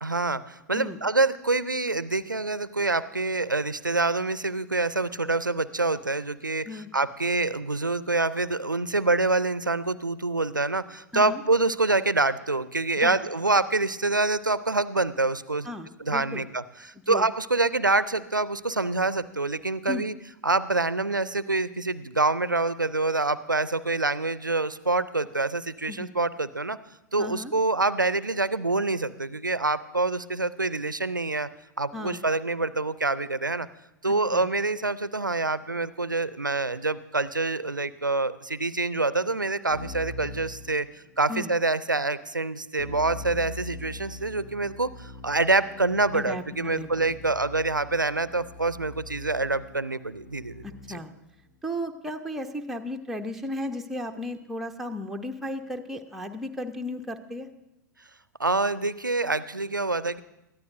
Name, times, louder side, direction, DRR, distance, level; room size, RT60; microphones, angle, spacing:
voice 1, 0.0-15.7 16.0-20.1 20.4-26.8 27.1-31.5 31.8-33.7 34.0-40.9 41.2-51.0 58.4-60.2, right 3 dB, 90° right, 17 dB, 0.5 m, -26 dB
voice 2, 15.6-16.4 17.1-17.3 19.9-20.0 25.9-26.1 27.2-27.5 31.9-32.2 34.3-34.5 41.3-41.5 46.1-47.2 50.6-51.1 51.6-57.5, left 1 dB, ahead, 3 dB, 0.7 m, -35 dB
Keyboard (musical), 39.7-41.4 42.8-51.2, left 2 dB, 55° left, 5.0 m, -43 dB
20.0 x 13.5 x 2.6 m, 0.90 s
figure-of-eight pair, 95°, 10 cm